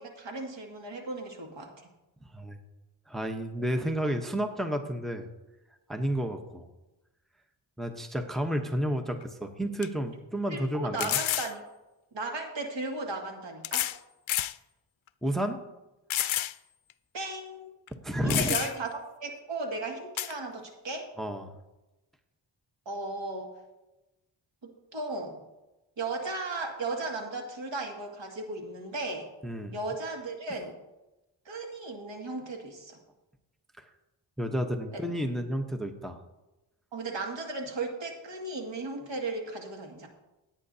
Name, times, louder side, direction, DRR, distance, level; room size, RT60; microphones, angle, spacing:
voice 1, 0.0-1.7 10.5-11.6 12.1-13.9 17.1-17.7 18.2-18.9 19.2-21.1 22.9-23.5 24.6-25.4 26.0-29.3 29.7-30.8 31.5-33.0 34.9-35.0 36.9-40.1, right 3 dB, 65° right, 1 dB, 2.2 m, -36 dB
voice 2, 3.1-5.3 5.9-6.7 7.8-11.2 15.2-15.6 18.0-18.6 21.2-21.5 29.4-29.7 33.8-33.9 34.4-36.2, equal, ahead, 6 dB, 0.9 m, -31 dB
sound 1, 9.2-9.3 9.8-9.9 11.0-11.5 12.7-12.8 13.6-14.0 14.3-14.6 15.1-15.2 16.1-16.6 16.9-17.0 17.9-18.0 18.3-18.9 20.2-20.3, left 13 dB, 75° left, 0.5 m, -29 dB
17.0 x 8.9 x 2.8 m, 1.0 s
wide cardioid pair, 90°, 48 cm